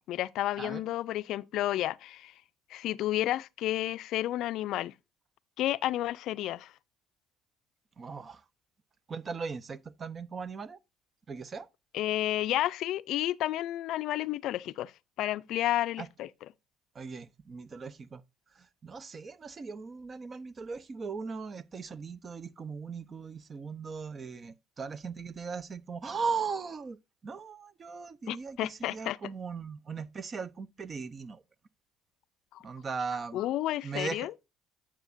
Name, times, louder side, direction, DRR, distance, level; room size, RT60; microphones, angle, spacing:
voice 1, 0.1-2.3 2.7-4.9 5.6-6.7 11.9-14.9 15.2-16.3 28.3-29.2 32.5-32.6 33.3-34.3, left 14 dB, 65° left, 0.4 m, -31 dB
voice 2, 8.0-8.4 9.1-10.8 11.3-11.7 16.0-16.1 17.0-18.2 18.8-27.0 27.2-31.4 32.6-33.4 33.8-34.3, right 5 dB, 35° right, 0.7 m, -38 dB
9.0 x 7.2 x 2.6 m
supercardioid pair, 80°, 0 cm